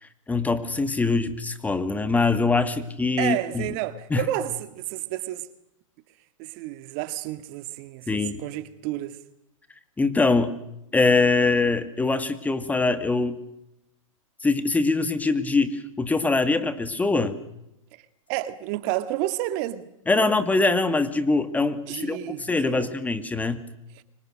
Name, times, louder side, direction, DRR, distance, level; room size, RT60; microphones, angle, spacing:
voice 1, 0.0-3.7 4.1-4.2 8.1-8.4 10.0-10.6 10.9-13.4 14.4-17.4 20.1-23.6, left 3 dB, 10° left, 2.2 m, -23 dB
voice 2, 3.2-5.5 6.4-9.2 17.9-18.0 18.3-20.3 21.8-22.9, right 14 dB, 45° right, 2.1 m, -31 dB
29.5 x 25.0 x 6.5 m
hypercardioid pair, 125°, 17 cm